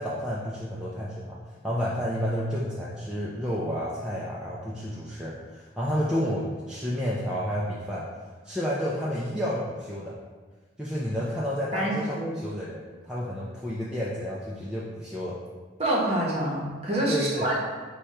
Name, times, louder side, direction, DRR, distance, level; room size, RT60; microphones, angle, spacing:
voice 1, 0.0-1.4 1.6-8.1 8.4-10.2 10.8-15.4 17.1-17.5, equal, 5° right, -7 dB, 0.3 m, -30 dB
voice 2, 11.7-12.3 15.8-17.6, right 1 dB, 30° right, -4 dB, 0.9 m, -27 dB
4.9 x 2.3 x 4.1 m, 1.4 s
head